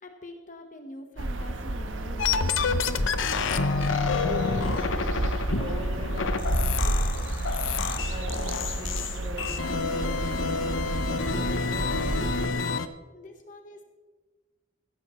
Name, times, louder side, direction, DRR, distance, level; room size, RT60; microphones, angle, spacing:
voice 1, 0.0-3.0 13.1-13.8, left 1 dB, 40° left, 4 dB, 1.1 m, -44 dB
sound 1, 1.2-12.5, right 1 dB, 85° right, 1.1 m, -31 dB
sound 2, 2.2-12.9, left 5 dB, 80° left, 0.7 m, -28 dB
voice 2, 3.4-5.0 5.5-7.4 8.1-10.6 11.0-12.3, equal, 30° right, -4 dB, 5.1 m, -41 dB
16.0 x 14.5 x 3.1 m, 1.3 s
head